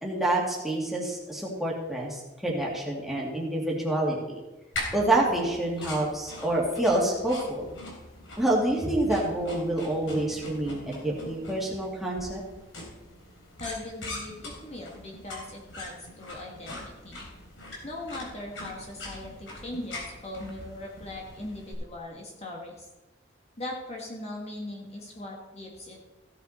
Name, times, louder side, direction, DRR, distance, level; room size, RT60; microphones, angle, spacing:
voice 1, 0.0-4.2 4.9-7.7 8.4-12.4, right 1 dB, ahead, -4 dB, 2.4 m, -27 dB
sound 1, 4.7-21.7, left 1 dB, 85° left, 3.6 m, -42 dB
voice 2, 13.6-17.2 17.8-22.9 23.6-26.1, left 1 dB, 35° left, -1 dB, 1.7 m, -40 dB
15.5 x 8.2 x 4.3 m, 1.1 s
head